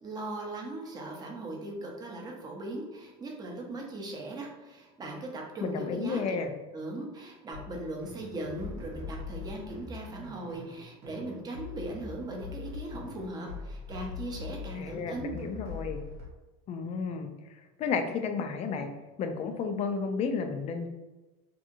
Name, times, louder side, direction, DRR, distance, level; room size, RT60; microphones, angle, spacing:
voice 1, 0.0-6.4 6.7-15.4, right 2 dB, 20° right, 0 dB, 0.6 m, -39 dB
voice 2, 5.6-6.5 14.7-16.0 16.7-17.3 17.8-18.9 19.2-20.9, left 5 dB, 35° left, 7 dB, 0.4 m, -32 dB
sound 1, 7.5-16.2, left 4 dB, 90° right, 0.8 m, -42 dB
2.7 x 2.6 x 2.5 m, 1.1 s
supercardioid pair, 130°, 19 cm